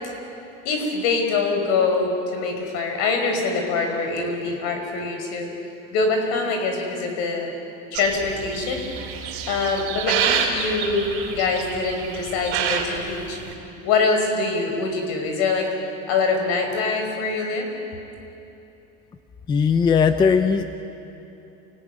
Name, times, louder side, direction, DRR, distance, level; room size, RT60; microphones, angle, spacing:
voice 1, 0.6-5.5 5.9-7.5 7.9-8.8 9.5-13.4 13.8-15.7 16.1-17.7, left 4 dB, 60° left, 4 dB, 5.6 m, -24 dB
sound 1, 7.9-13.5, right 7 dB, 50° right, 4.7 m, -28 dB
voice 2, 19.5-20.8, left 6 dB, 15° left, 9 dB, 0.6 m, -18 dB
28.5 x 19.5 x 9.7 m, 2.9 s
cardioid pair, 175°, 29 cm